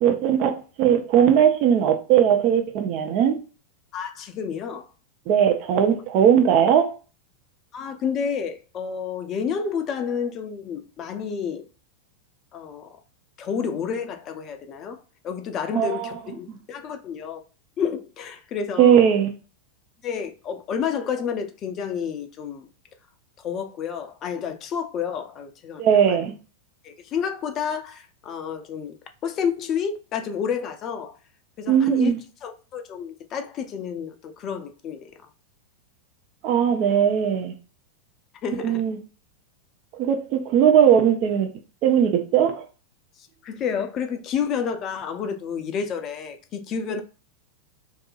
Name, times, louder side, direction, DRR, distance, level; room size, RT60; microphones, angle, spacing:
voice 1, 0.0-3.4 5.3-6.9 15.7-16.2 16.5-16.6 18.8-19.3 25.8-26.3 31.7-32.2 36.4-37.5 38.6-39.0 40.0-41.5 41.8-42.6, right 9 dB, 40° right, 0.5 m, -19 dB
voice 2, 3.9-4.9 7.7-11.6 12.5-12.9 13.4-15.0 15.2-17.4 17.8-19.0 20.0-22.7 23.4-26.2 26.8-29.0 29.2-31.2 31.6-32.1 32.4-35.0 38.4-38.8 43.4-47.0, left 7 dB, 30° left, 0.4 m, -30 dB
2.7 x 2.5 x 2.4 m
figure-of-eight pair, 90°, 0 cm